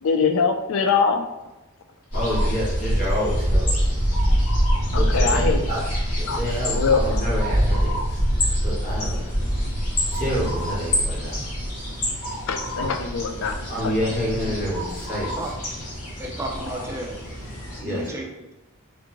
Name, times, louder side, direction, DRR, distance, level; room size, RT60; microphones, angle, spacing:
voice 1, 0.0-1.3 4.9-5.6 6.2-7.2 12.5-13.9, left 5 dB, 60° left, 6 dB, 0.4 m, -23 dB
sound 1, 2.1-17.8, equal, 80° left, 1.3 m, -25 dB
voice 2, 2.1-3.9 4.9-5.8 6.1-8.2 8.5-9.3 10.1-11.4 12.8-12.9 13.7-15.3 17.8-18.1, equal, 40° left, -7 dB, 1.3 m, -28 dB
voice 3, 16.2-17.2 17.8-18.5, right 1 dB, 10° right, 0 dB, 0.3 m, -33 dB
3.5 x 3.0 x 2.5 m, 1.0 s
head